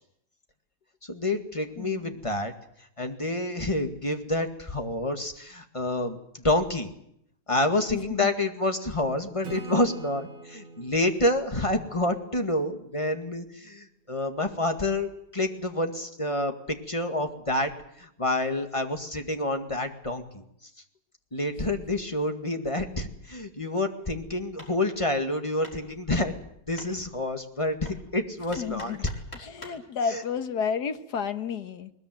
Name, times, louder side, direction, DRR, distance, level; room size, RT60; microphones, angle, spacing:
voice 1, 1.0-2.5 3.0-6.9 7.5-17.7 18.0-20.4 21.3-26.3 26.7-29.0 30.1-30.2, left 1 dB, 20° left, 6 dB, 1.9 m, -28 dB
voice 2, 1.8-2.2 7.9-8.3 28.6-29.1 29.3-31.9, left 6 dB, 65° left, 10 dB, 1.8 m, -32 dB
Acoustic guitar / Strum, 9.4-13.0, right 3 dB, 85° right, 3.2 m, -44 dB
Hammer, 24.4-29.9, left 1 dB, 35° left, 4.5 m, -49 dB
21.0 x 20.5 x 9.2 m, 0.73 s
omnidirectional pair, 1.9 m